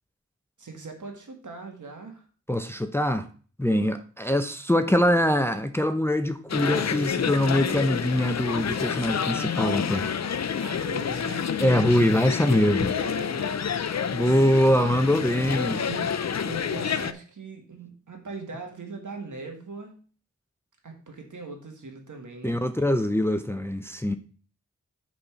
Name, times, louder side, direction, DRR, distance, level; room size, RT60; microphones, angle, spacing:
voice 1, 0.6-2.2 3.7-3.9 10.6-11.6 12.9-13.8 15.3-16.1 16.4-20.0 20.8-22.6, right 3 dB, 85° right, 1.8 m, -40 dB
voice 2, 2.5-3.3 3.6-10.1 11.6-12.9 14.1-15.8 22.4-24.1, left 1 dB, 10° left, 0.6 m, -23 dB
sound 1, 6.5-17.1, left 7 dB, 65° left, 0.6 m, -28 dB
8.6 x 4.2 x 5.8 m
wide cardioid pair, 55°, 30 cm